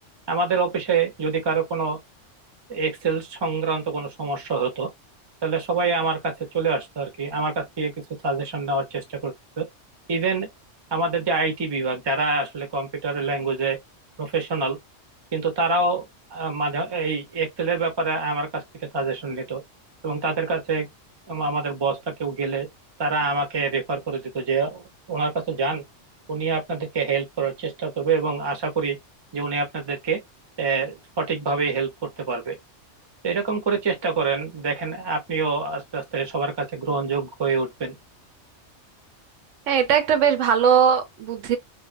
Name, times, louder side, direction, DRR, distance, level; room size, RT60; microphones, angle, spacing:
voice 1, 0.3-2.0 2.7-4.9 5.4-7.9 8.2-9.6 10.1-10.5 10.9-13.8 14.2-14.8 15.3-16.0 16.3-18.6 18.9-19.6 20.0-20.9 21.3-22.7 23.0-25.8 26.3-29.0 29.3-30.2 30.6-31.9 32.2-32.5 33.2-37.9, right 4 dB, 30° right, 0.5 m, -26 dB
voice 2, 39.7-41.6, right 7 dB, 90° right, 1.0 m, -19 dB
2.5 x 2.1 x 2.4 m
omnidirectional pair, 1.3 m